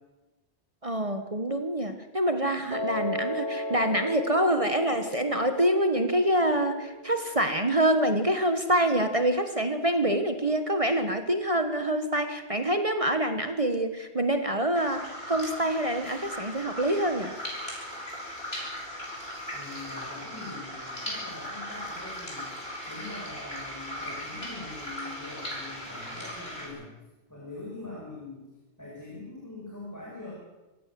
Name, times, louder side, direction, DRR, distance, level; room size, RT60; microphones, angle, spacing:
voice 1, 0.8-17.3, right 1 dB, 30° right, 7 dB, 1.5 m, -26 dB
Piano, 2.7-8.8, left 1 dB, 70° right, 3.8 m, -36 dB
sound 1, 14.7-26.7, equal, 60° left, 7.1 m, -38 dB
voice 2, 19.5-22.6 22.9-26.9 27.3-28.5 28.8-30.3, left 2 dB, 15° left, -4 dB, 6.2 m, -43 dB
25.0 x 16.5 x 7.7 m, 1.1 s
omnidirectional pair, 1.2 m